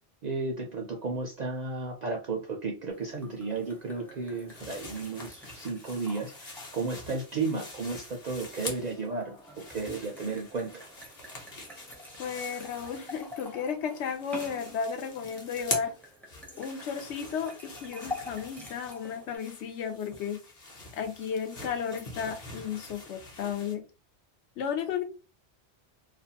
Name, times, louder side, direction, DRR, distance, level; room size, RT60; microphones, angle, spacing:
voice 1, 0.2-9.4 9.7-10.9, right 3 dB, 55° right, 1 dB, 0.5 m, -33 dB
sound 1, 2.9-19.4, left 1 dB, 5° left, 0.3 m, -47 dB
sound 2, 4.5-9.1 9.4-13.6 13.8-23.7, left 2 dB, 40° left, 0.8 m, -44 dB
voice 2, 12.2-15.9 16.6-20.4 20.9-23.8 24.6-25.0, left 7 dB, 80° left, 5 dB, 0.9 m, -34 dB
2.5 x 2.2 x 2.7 m, 0.32 s
omnidirectional pair, 1.2 m